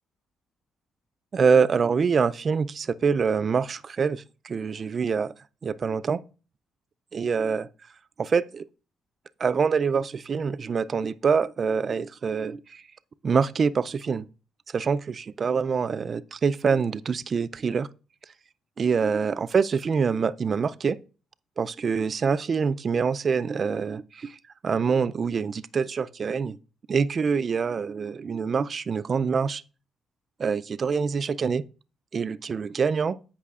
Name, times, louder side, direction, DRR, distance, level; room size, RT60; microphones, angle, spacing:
voice 1, 1.3-5.3 5.6-6.2 7.1-7.7 8.2-8.6 9.4-12.6 13.2-14.3 14.7-17.9 18.8-21.0 21.6-24.4 24.6-26.6 26.9-29.6 30.4-31.6 32.1-33.2, right 5 dB, 45° right, 0.4 m, -25 dB
14.5 x 5.5 x 2.4 m
cardioid pair, 90°, 0 cm